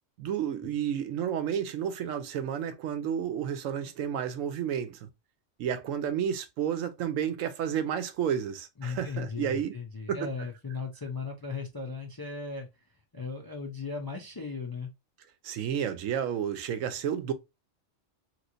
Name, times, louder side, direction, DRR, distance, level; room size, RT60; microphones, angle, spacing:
voice 1, 0.2-5.1 5.6-9.7 10.1-10.2 15.4-17.3, right 9 dB, 90° right, 1.0 m, -31 dB
voice 2, 8.8-14.9, left 4 dB, 35° left, 0.3 m, -37 dB
3.1 x 3.0 x 2.5 m
omnidirectional pair, 1.3 m